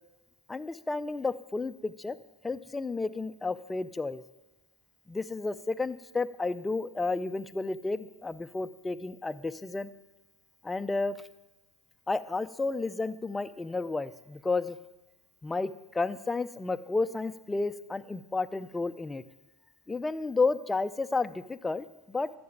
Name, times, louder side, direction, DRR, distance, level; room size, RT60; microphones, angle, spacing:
voice 1, 0.5-2.2 2.4-4.2 5.1-9.9 10.6-11.2 12.1-14.8 15.4-19.2 19.9-22.3, left 3 dB, 15° left, 10 dB, 0.6 m, -31 dB
12.0 x 6.8 x 8.8 m, 1.0 s
supercardioid pair, 105°, 0 cm